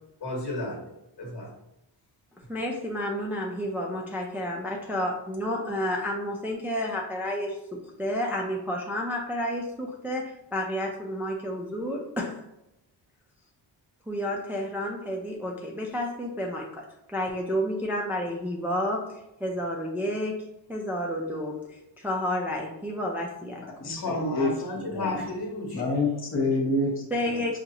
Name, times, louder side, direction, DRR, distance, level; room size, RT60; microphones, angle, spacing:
voice 1, 0.2-0.9 1.2-1.5 23.8-25.9, left 1 dB, 55° left, -2 dB, 1.4 m, -32 dB
voice 2, 2.5-12.4 14.1-23.6 27.1-27.6, equal, 5° right, -1 dB, 0.4 m, -31 dB
voice 3, 23.8-25.2 25.7-27.6, left 2 dB, 30° left, -2 dB, 0.8 m, -28 dB
5.1 x 2.5 x 2.8 m, 0.87 s
wide cardioid pair, 110°, 45 cm